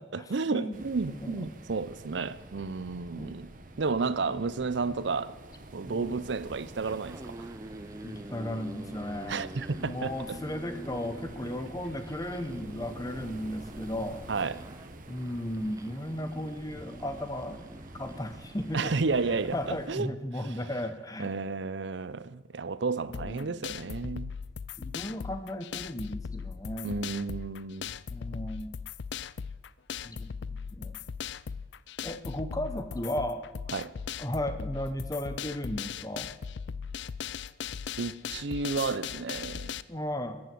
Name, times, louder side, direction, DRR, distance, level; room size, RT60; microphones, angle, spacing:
voice 1, 0.1-5.4 5.7-7.5 9.3-10.4 14.3-14.6 18.7-20.5 21.2-24.3 26.8-27.9 33.7-33.9 38.0-39.8, right 4 dB, 65° right, 0.6 m, -32 dB
sound 1, 0.7-19.9, right 1 dB, 45° right, 1.2 m, -47 dB
voice 2, 1.1-1.5 3.2-3.4 4.3-4.4 5.8-6.2 8.0-9.5 9.8-14.2 15.1-17.6 18.0-18.9 19.3-21.3 23.1-23.8 24.8-27.0 28.1-28.8 30.0-30.3 30.7-31.0 32.0-33.4 34.2-36.3 39.9-40.4, left 1 dB, 20° left, 1.0 m, -35 dB
sound 2, 6.8-19.0, right 1 dB, 15° right, 0.5 m, -47 dB
sound 3, 23.1-39.8, left 7 dB, 65° left, 0.4 m, -38 dB
14.5 x 9.6 x 7.7 m
head